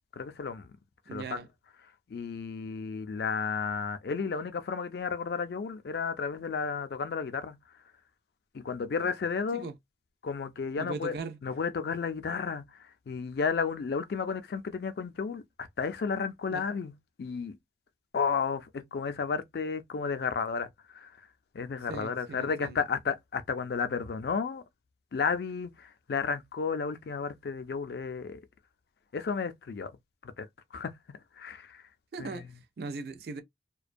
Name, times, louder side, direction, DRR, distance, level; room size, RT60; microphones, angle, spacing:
voice 1, 0.1-0.7 1.1-1.4 2.1-7.6 8.5-9.7 10.2-11.1 11.4-17.6 18.1-21.1 21.5-24.6 25.1-28.4 29.1-29.9 30.2-30.5 30.7-31.8 32.2-32.5, left 5 dB, 60° left, 0.4 m, -33 dB
voice 2, 1.1-1.5 9.5-9.7 10.8-11.4 16.5-16.6 21.9-22.8 32.1-32.5 32.8-33.4, right 4 dB, 60° right, 0.4 m, -39 dB
2.5 x 2.1 x 2.5 m
head